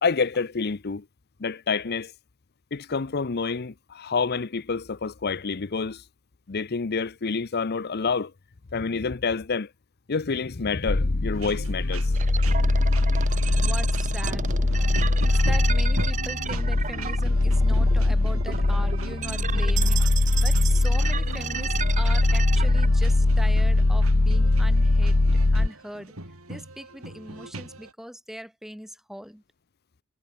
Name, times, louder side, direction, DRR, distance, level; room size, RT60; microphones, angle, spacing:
voice 1, 0.0-1.0 1.4-2.1 2.7-6.0 6.5-8.3 8.7-9.7 10.1-12.1, left 4 dB, 50° left, 0.7 m, -28 dB
sound 1, 10.9-25.7, left 2 dB, 80° left, 1.2 m, -22 dB
sound 2, 11.3-27.9, right 2 dB, 90° right, 6.5 m, -41 dB
sound 3, 12.1-22.9, right 7 dB, 35° right, 1.4 m, -34 dB
voice 2, 13.6-14.8 15.2-20.0 20.4-25.2 25.5-26.1 26.5-29.4, equal, ahead, 2.7 m, -40 dB
head